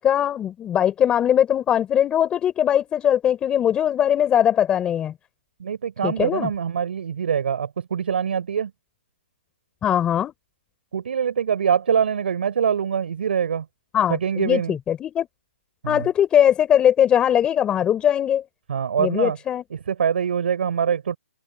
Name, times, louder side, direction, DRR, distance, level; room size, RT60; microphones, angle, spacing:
voice 1, 0.0-5.1 6.0-6.5 9.8-10.3 13.9-15.3 15.9-18.4 19.0-19.6, left 10 dB, 15° left, 4.4 m, -20 dB
voice 2, 5.6-8.7 10.9-13.6 14.1-14.7 15.8-16.1 18.7-19.4 19.7-21.2, right 7 dB, 65° right, 4.7 m, -24 dB
open air
hypercardioid pair, 150°, 6 cm